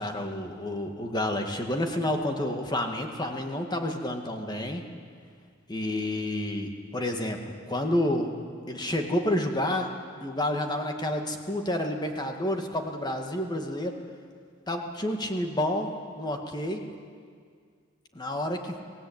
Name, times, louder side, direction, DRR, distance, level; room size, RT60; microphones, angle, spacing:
voice 1, 0.0-4.8 5.7-7.4 7.7-8.3 8.7-9.9 10.2-14.0 14.7-16.8 18.1-18.7, left 1 dB, 20° left, 3 dB, 2.1 m, -29 dB
26.0 x 18.0 x 9.0 m, 2.1 s
head